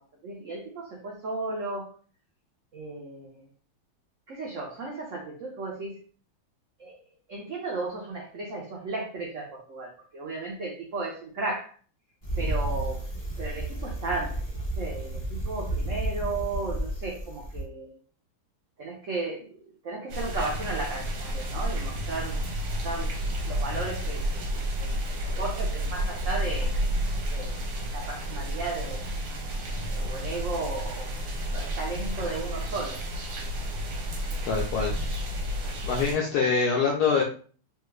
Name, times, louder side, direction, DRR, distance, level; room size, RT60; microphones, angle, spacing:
voice 1, 0.2-1.9 2.7-3.4 4.3-5.9 6.8-7.0 7.3-11.7 12.4-13.0 13.4-14.4 14.8-17.9 18.8-19.5 19.8-22.4 22.8-23.2 23.5-26.8 27.3-27.6 27.9-29.1 29.9-33.0, right 3 dB, 80° right, -2 dB, 0.6 m, -35 dB
Bicycle, 12.2-17.6, right 1 dB, 25° left, 0.7 m, -32 dB
sound 1, 20.1-36.2, equal, 65° right, 1.2 m, -31 dB
voice 2, 34.5-34.9 35.8-37.2, left 5 dB, 80° left, -1 dB, 0.9 m, -24 dB
3.3 x 2.3 x 3.0 m, 0.42 s
omnidirectional pair, 2.2 m